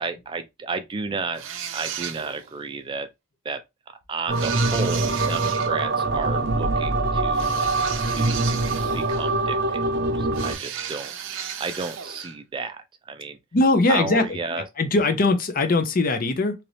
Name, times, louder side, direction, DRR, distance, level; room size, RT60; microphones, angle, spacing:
voice 1, 0.0-1.4 1.7-3.1 3.5-3.6 4.1-7.6 8.1-8.4 8.9-11.1 11.6-13.4 13.9-14.6, right 4 dB, 25° right, 0.3 m, -32 dB
sound 1, 1.4-2.5 4.3-5.7 7.3-9.4 10.3-12.4, right 8 dB, 80° right, 0.5 m, -34 dB
sound 2, 4.3-10.5, right 2 dB, 60° right, 0.8 m, -24 dB
voice 2, 13.5-16.5, left 2 dB, 45° left, 0.6 m, -21 dB
2.9 x 2.6 x 3.1 m
head